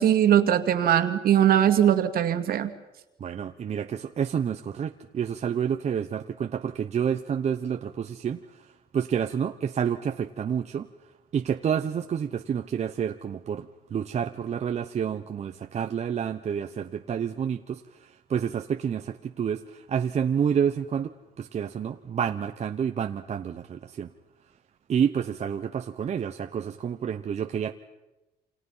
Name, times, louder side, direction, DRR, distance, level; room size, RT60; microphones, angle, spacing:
voice 1, 0.0-2.7, right 10 dB, 60° right, 9 dB, 2.2 m, -20 dB
voice 2, 3.2-8.4 8.9-10.9 11.3-24.1 24.9-27.7, right 8 dB, 40° right, 6 dB, 1.0 m, -29 dB
29.0 x 27.0 x 5.7 m, 1.0 s
cardioid pair, 110°, 17 cm